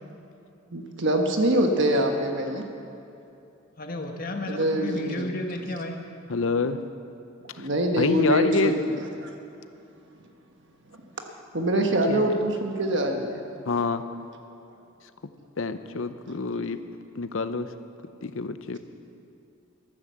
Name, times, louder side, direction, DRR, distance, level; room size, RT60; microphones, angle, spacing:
voice 1, 0.7-2.6 4.5-5.3 7.6-8.9 9.2-9.3 11.5-13.4, right 1 dB, 60° right, 3 dB, 1.3 m, -24 dB
voice 2, 3.8-6.0, left 1 dB, 45° left, 3 dB, 1.4 m, -32 dB
voice 3, 6.3-6.8 7.5-7.7 8.0-8.7 12.1-12.3 13.7-14.0 15.6-16.8 17.1-17.7 18.2-18.8, left 3 dB, 70° left, 10 dB, 0.7 m, -26 dB
13.5 x 12.5 x 7.5 m, 2.7 s
head